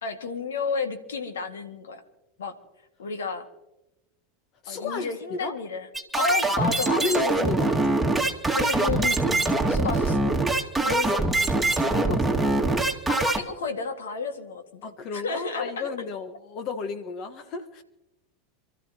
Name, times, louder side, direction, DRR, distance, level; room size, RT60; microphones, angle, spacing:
voice 1, 0.0-2.0 2.4-2.6 3.0-3.4 4.7-5.9 6.2-7.3 8.5-10.4 13.4-15.9, left 4 dB, 80° left, 6 dB, 2.0 m, -31 dB
voice 2, 4.6-5.6 7.0-8.0 10.8-11.3 11.8-12.6 13.1-13.4 14.8-17.8, left 4 dB, 45° left, 9 dB, 1.4 m, -33 dB
sound 1, 5.9-13.4, right 2 dB, 5° right, 2.2 m, -23 dB
28.5 x 13.5 x 3.0 m, 0.95 s
hypercardioid pair, 90°, 0 cm